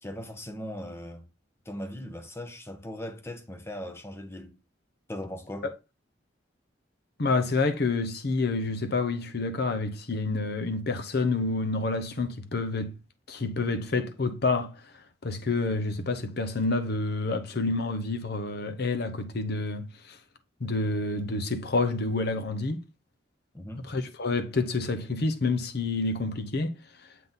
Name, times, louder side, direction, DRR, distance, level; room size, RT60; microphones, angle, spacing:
voice 1, 0.0-1.3 1.7-4.6 5.1-5.7 23.5-23.9, left 1 dB, 15° left, 0.8 m, -39 dB
voice 2, 7.2-12.9 13.3-14.8 15.2-20.2 20.6-22.8 23.9-26.8, left 3 dB, 60° left, 0.8 m, -28 dB
7.5 x 3.7 x 3.9 m
head